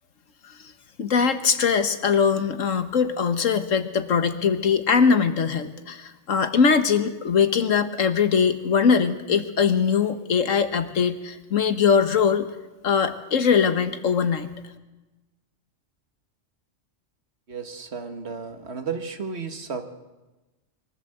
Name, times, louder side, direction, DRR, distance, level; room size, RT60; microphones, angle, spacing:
voice 1, 1.0-12.5 12.8-14.5, left 6 dB, 90° left, 9 dB, 1.6 m, -21 dB
voice 2, 17.5-19.8, right 5 dB, 60° right, 7 dB, 1.8 m, -33 dB
23.0 x 15.0 x 7.8 m, 1.1 s
omnidirectional pair, 1.3 m